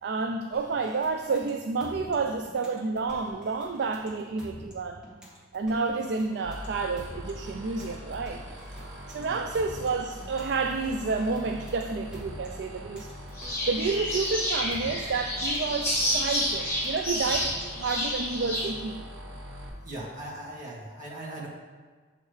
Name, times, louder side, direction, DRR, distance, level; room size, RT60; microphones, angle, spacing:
voice 1, 0.0-5.0 5.5-8.4 9.1-13.1 13.7-19.1, right 4 dB, 60° right, 5 dB, 0.4 m, -30 dB
sound 1, 0.5-17.9, left 1 dB, 5° right, 1.5 m, -48 dB
sound 2, 6.4-19.7, equal, 90° right, 1.7 m, -43 dB
sound 3, 13.4-18.7, equal, 15° left, 2.1 m, -29 dB
voice 2, 19.8-21.5, right 1 dB, 45° right, -6 dB, 1.9 m, -39 dB
7.2 x 6.4 x 3.2 m, 1.5 s
head